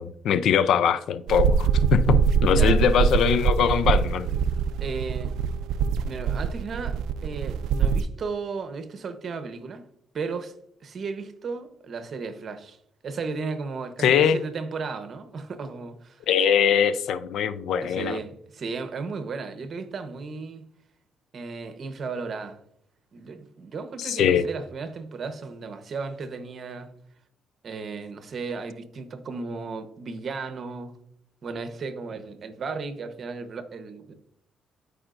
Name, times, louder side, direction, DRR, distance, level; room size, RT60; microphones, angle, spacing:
voice 1, 0.0-4.3 14.0-14.4 16.3-18.2 24.0-24.4, left 8 dB, 75° left, 0.5 m, -22 dB
sound 1, 1.3-8.0, right 7 dB, 85° right, 0.3 m, -23 dB
voice 2, 2.5-2.9 4.8-5.3 6.1-9.9 10.1-12.8 13.0-16.3 17.8-20.7 21.3-22.6 23.1-26.9 27.6-31.0 31.4-34.1, right 4 dB, 50° right, 1.0 m, -35 dB
13.0 x 5.0 x 2.5 m
cardioid pair, 90°, 0 cm